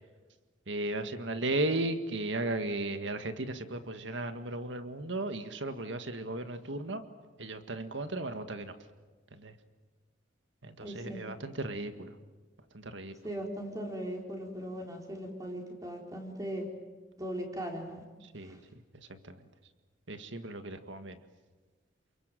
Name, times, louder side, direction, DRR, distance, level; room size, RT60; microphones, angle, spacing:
voice 1, 0.7-7.0 7.4-8.8 9.3-9.6 10.6-12.2 12.7-13.1 18.2-19.5 20.1-21.2, right 2 dB, 75° right, 8 dB, 1.8 m, -36 dB
voice 2, 10.8-11.2 13.2-16.6 17.2-18.0 18.4-18.6, right 1 dB, 20° right, 1 dB, 4.4 m, -38 dB
29.0 x 23.0 x 7.7 m, 1.3 s
head